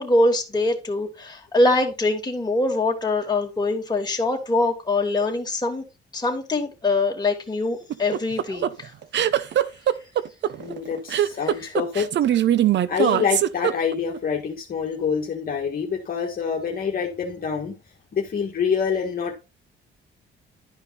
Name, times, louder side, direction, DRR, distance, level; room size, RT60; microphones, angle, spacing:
voice 1, 0.0-5.8 6.1-8.7, left 2 dB, 20° left, 0 dB, 3.1 m, -23 dB
sound 1, 7.9-14.2, right 11 dB, 65° right, 0.8 m, -21 dB
voice 2, 10.6-12.1 12.9-17.8 18.1-19.4, left 6 dB, 45° left, 0 dB, 1.8 m, -26 dB
12.0 x 5.2 x 4.2 m, 0.29 s
cardioid pair, 90°, 20 cm